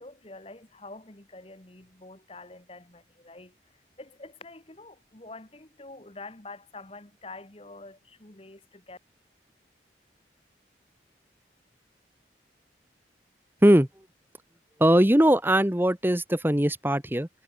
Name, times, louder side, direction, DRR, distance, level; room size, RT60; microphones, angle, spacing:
voice 1, 0.0-3.6 4.0-9.0, left 2 dB, 30° left, 1.7 m, -46 dB
voice 2, 14.8-17.3, right 1 dB, 10° right, 1.2 m, -20 dB
head